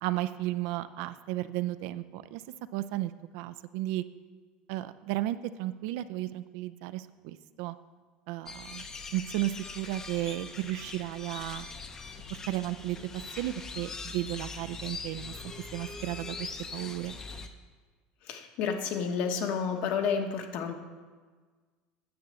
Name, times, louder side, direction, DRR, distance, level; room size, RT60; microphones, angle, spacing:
voice 1, 0.0-2.4 2.7-4.0 4.7-7.8 8.3-8.9 9.1-11.7 12.5-17.1, right 15 dB, 60° right, 13 dB, 0.5 m, -34 dB
sound 1, 8.5-17.5, left 4 dB, 15° left, 0.7 m, -42 dB
voice 2, 18.3-20.7, left 6 dB, 45° left, 5 dB, 1.2 m, -30 dB
9.6 x 7.0 x 7.5 m, 1.5 s
cardioid pair, 170°, 3 cm